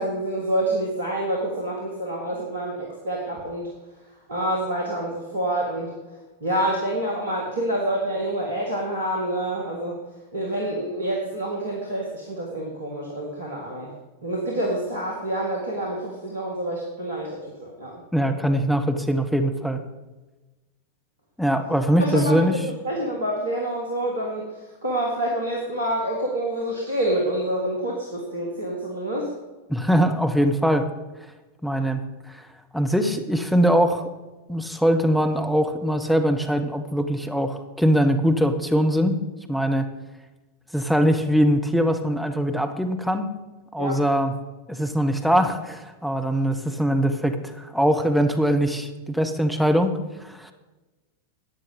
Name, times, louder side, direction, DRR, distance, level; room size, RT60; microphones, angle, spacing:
voice 1, 0.0-3.7 4.3-5.9 6.4-10.0 10.3-13.9 14.2-17.9 22.0-22.6 22.8-24.5 24.8-29.3 43.8-44.0, right 1 dB, 75° right, -2 dB, 2.2 m, -27 dB
voice 2, 18.1-19.8 21.4-22.5 29.7-30.9 31.6-32.0 32.7-34.0 34.5-39.2 39.5-39.8 40.7-43.3 43.7-44.3 44.7-50.0 50.2-50.5, equal, ahead, 6 dB, 1.1 m, -22 dB
14.0 x 9.5 x 5.2 m, 1.2 s
figure-of-eight pair, 90°, 0 cm